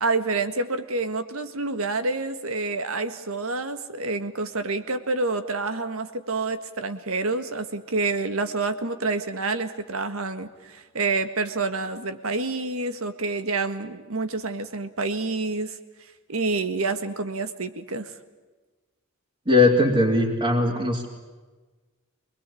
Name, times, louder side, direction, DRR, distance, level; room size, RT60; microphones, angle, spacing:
voice 1, 0.0-15.8 16.3-18.1, right 3 dB, 85° right, 10 dB, 1.8 m, -28 dB
voice 2, 19.5-21.1, left 2 dB, 25° right, -4 dB, 2.9 m, -20 dB
25.0 x 21.5 x 8.6 m, 1.3 s
head